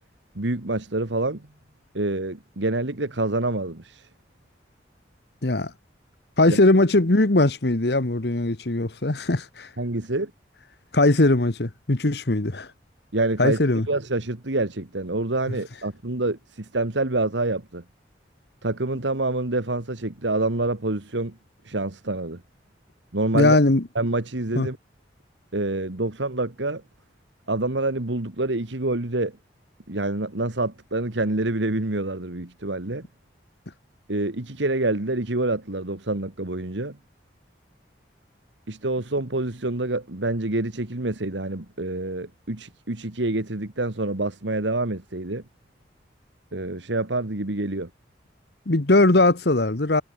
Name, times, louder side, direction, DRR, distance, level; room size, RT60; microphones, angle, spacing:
voice 1, 0.4-1.5 1.9-4.1 6.5-6.6 9.8-10.3 13.1-13.6 13.9-17.8 18.6-21.4 21.6-22.4 23.1-23.6 24.0-24.8 25.5-26.8 27.5-29.4 29.9-33.1 34.1-37.0 38.7-45.4 46.5-47.9, right 2 dB, 85° right, 1.9 m, -27 dB
voice 2, 5.4-5.7 6.4-9.7 10.9-12.7 13.4-13.9 23.3-23.8 24.6-24.7 48.7-50.0, left 2 dB, 65° left, 1.3 m, -20 dB
head